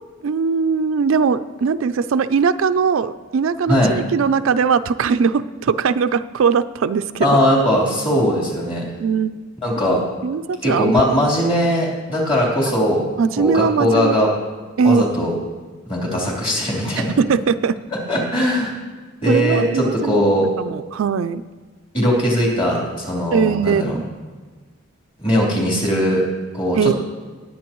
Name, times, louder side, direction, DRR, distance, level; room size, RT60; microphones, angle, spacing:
voice 1, 0.2-7.4 9.0-9.4 10.2-10.9 11.2-11.3 13.2-14.2 14.8-15.0 16.9-17.8 19.3-20.3 20.6-21.4 23.3-24.0 26.8-26.9, right 5 dB, 65° right, 12 dB, 0.4 m, -20 dB
voice 2, 3.7-4.0 7.2-8.8 9.6-10.0 10.6-13.0 13.4-14.3 14.8-15.3 15.9-17.2 17.9-18.7 19.2-20.5 21.9-24.0 25.2-26.2 26.5-26.9, equal, 25° left, -4 dB, 3.5 m, -19 dB
19.5 x 8.9 x 3.1 m, 1.4 s
head